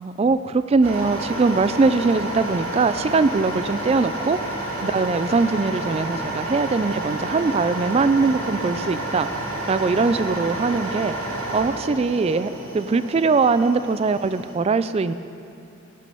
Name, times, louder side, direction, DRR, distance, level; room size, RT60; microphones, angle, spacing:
voice 1, 0.0-4.4 4.8-9.3 9.7-11.1 11.5-15.1, right 4 dB, 30° right, 13 dB, 0.3 m, -21 dB
sound 1, 0.8-14.5, right 1 dB, 80° right, 2.6 m, -30 dB
18.5 x 6.9 x 5.3 m, 2.6 s
head